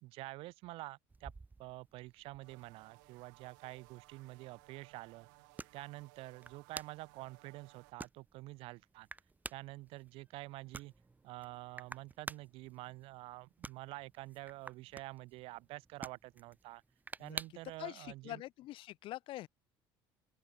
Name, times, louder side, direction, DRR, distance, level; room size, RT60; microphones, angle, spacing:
voice 1, 0.0-1.3 1.6-5.3 5.7-9.1 9.5-10.9 11.2-16.8 17.2-18.4, right 20 dB, 70° right, 0.9 m, -48 dB
sound 1, 1.1-17.8, right 3 dB, 15° right, 1.3 m, -52 dB
sound 2, 2.4-7.9, right 30 dB, 85° right, 5.7 m, -62 dB
voice 2, 17.8-19.5, left 16 dB, 60° left, 0.7 m, -45 dB
open air
supercardioid pair, 100°, 10 cm